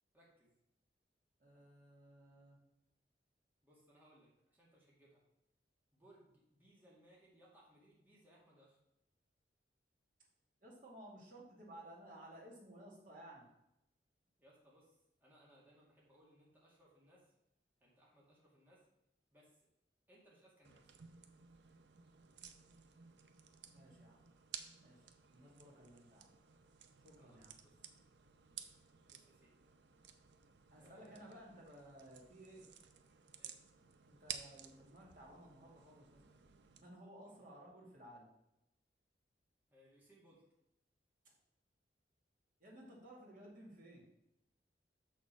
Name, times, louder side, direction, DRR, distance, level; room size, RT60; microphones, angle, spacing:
voice 1, 0.1-0.6 3.6-5.2 5.9-8.8 14.4-17.3 17.8-18.9 19.3-19.7 20.1-20.8 27.2-27.8 29.1-29.6 30.8-31.3 33.4-33.6 37.3-37.4 39.7-40.4, equal, 10° right, -6 dB, 2.0 m, -67 dB
voice 2, 1.4-2.6 10.6-13.5 23.7-24.3 24.8-26.3 27.0-27.5 30.7-32.7 34.1-36.2 36.8-38.3 42.6-44.0, right 1 dB, 45° right, -3 dB, 2.4 m, -56 dB
sound 1, 20.6-36.8, right 8 dB, 80° right, 0.6 m, -55 dB
6.5 x 6.5 x 4.6 m, 0.86 s
head